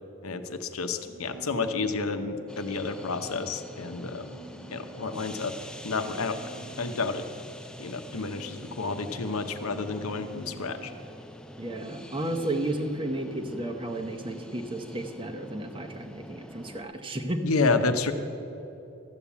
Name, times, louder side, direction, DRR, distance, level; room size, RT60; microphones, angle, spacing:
voice 1, 0.2-4.3 4.7-5.5 5.8-6.4 6.8-7.3 7.8-10.9 17.4-18.1, left 3 dB, 80° left, 8 dB, 0.8 m, -30 dB
sound 1, 1.0-2.1 4.0-5.1 6.0-7.1 8.0-9.1 9.9-11.1 12.0-13.1 13.9-15.1 15.9-16.3, right 3 dB, 75° right, 1.4 m, -51 dB
sound 2, 2.5-16.8, left 1 dB, 5° left, 0.3 m, -45 dB
voice 2, 11.6-17.4, right 1 dB, 25° right, 4 dB, 0.8 m, -33 dB
13.0 x 7.2 x 8.3 m, 2.9 s
head